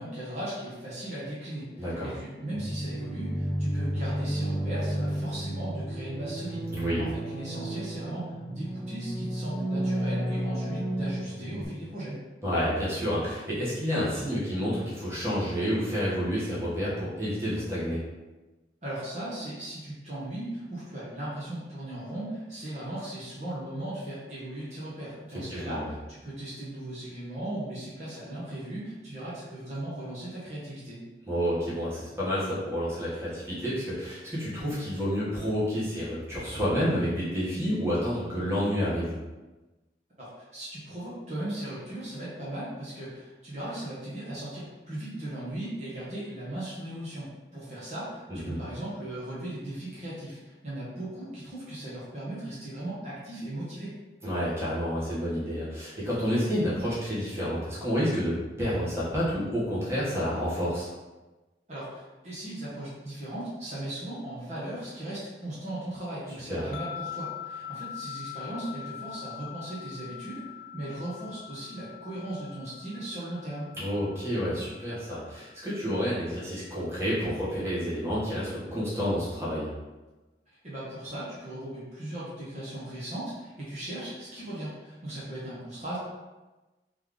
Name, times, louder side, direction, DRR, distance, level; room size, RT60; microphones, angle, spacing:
voice 1, 0.0-12.2 18.8-31.0 40.2-53.9 61.7-73.7 80.6-86.0, right 1 dB, 40° right, -8 dB, 1.0 m, -37 dB
voice 2, 1.8-2.1 6.7-7.0 12.4-18.0 25.3-25.8 31.3-39.2 48.3-48.6 54.2-60.9 66.5-66.7 73.7-79.7, equal, 15° right, -9 dB, 1.3 m, -29 dB
sound 1, 2.5-11.6, right 1 dB, 35° left, 1.0 m, -32 dB
sound 2, 66.7-76.0, left 10 dB, 70° left, 0.4 m, -43 dB
3.4 x 3.3 x 3.8 m, 1.1 s
head